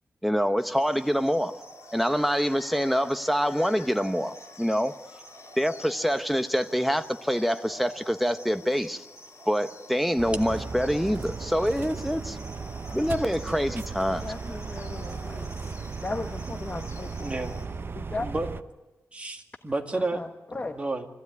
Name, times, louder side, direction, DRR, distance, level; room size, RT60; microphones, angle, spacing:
voice 1, 0.2-1.5 1.9-4.9 5.6-9.0 9.5-12.4 12.9-14.3, equal, ahead, 1.0 m, -26 dB
sound 1, 0.6-17.7, left 1 dB, 55° left, 5.6 m, -47 dB
sound 2, 10.2-18.6, right 4 dB, 45° right, 0.8 m, -36 dB
voice 2, 14.2-15.6 16.0-17.3 17.9-18.3 19.9-20.8, left 3 dB, 30° left, 1.3 m, -36 dB
voice 3, 17.2-17.5 18.1-18.5 19.1-20.2 20.7-21.1, right 2 dB, 25° right, 2.2 m, -31 dB
24.5 x 16.0 x 9.6 m
wide cardioid pair, 100°, 5 cm